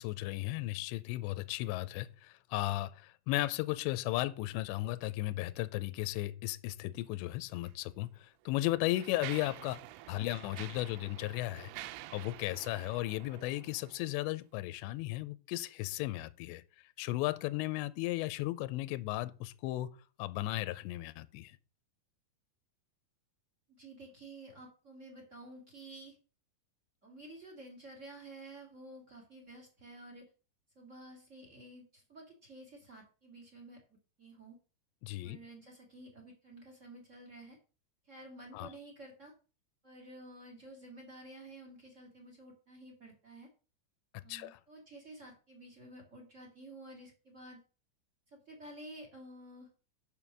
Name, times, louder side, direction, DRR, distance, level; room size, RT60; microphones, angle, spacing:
voice 1, 0.0-9.8 10.1-11.7 12.1-16.6 17.0-19.9 20.2-21.5 35.0-35.4 38.5-38.7 44.3-44.6, left 17 dB, 80° left, 2.7 m, -35 dB
Mechanisms, 7.6-7.7 8.4-14.2, right 15 dB, 90° right, 3.2 m, -48 dB
voice 2, 23.7-26.1 27.0-30.2 30.7-33.8 34.2-34.6 35.2-37.6 38.1-39.3 39.8-43.5 44.2-47.6 48.3-49.7, right 1 dB, 30° right, 1.4 m, -51 dB
7.3 x 6.9 x 6.0 m
omnidirectional pair, 5.5 m